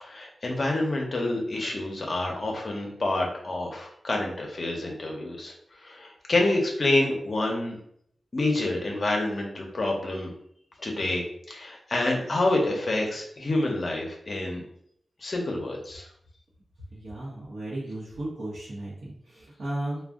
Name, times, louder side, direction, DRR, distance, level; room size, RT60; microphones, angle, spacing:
voice 1, 0.0-5.5 5.8-7.8 8.3-10.3 10.8-14.6 15.2-16.1, left 2 dB, 50° left, 0 dB, 0.6 m, -28 dB
voice 2, 16.9-20.0, right 1 dB, 70° right, -7 dB, 0.8 m, -35 dB
2.5 x 2.1 x 3.5 m, 0.68 s
wide cardioid pair, 125°, 0 cm